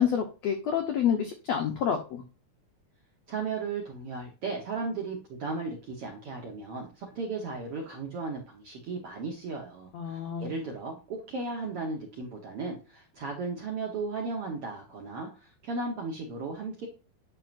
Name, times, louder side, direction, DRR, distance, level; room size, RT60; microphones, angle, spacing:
voice 1, 0.0-2.2 9.9-10.5, left 8 dB, 90° left, 4 dB, 1.4 m, -28 dB
voice 2, 3.3-16.9, right 3 dB, 65° right, 0 dB, 1.4 m, -35 dB
9.0 x 5.6 x 2.5 m, 0.32 s
omnidirectional pair, 4.2 m